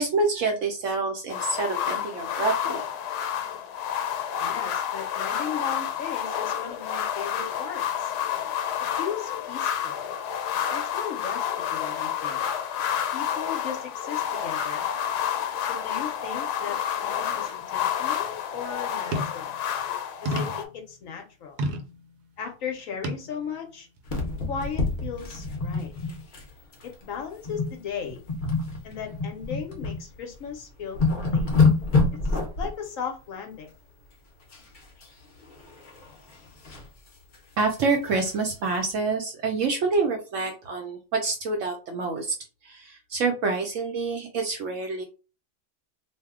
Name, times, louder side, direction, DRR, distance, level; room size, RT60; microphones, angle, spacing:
voice 1, 0.0-2.8 37.6-42.3 42.6-45.0, right 4 dB, 65° right, 3 dB, 0.8 m, -27 dB
sound 1, 1.3-20.6, left 9 dB, 85° left, 1.1 m, -29 dB
voice 2, 4.4-8.1 9.0-10.0 10.7-12.4 13.1-14.8 15.7-19.5 20.2-21.6 22.4-23.9 24.5-25.9 26.8-28.2 28.8-31.5 32.3-33.7, left 7 dB, 65° left, 3 dB, 1.0 m, -37 dB
sound 2, 19.1-19.5 20.3-20.7 21.6-21.9 23.0-23.3 24.0-24.1, right 1 dB, 85° right, 1.2 m, -29 dB
sound 3, 24.0-26.5 26.7-26.9 27.4-27.8 28.1-30.0 30.4-30.5 30.8-32.7 34.5-35.1 35.4-36.9 37.3-37.4 37.7-37.8 38.2-38.3, left 4 dB, 50° left, 0.6 m, -26 dB
2.6 x 2.1 x 3.5 m, 0.33 s
omnidirectional pair, 1.7 m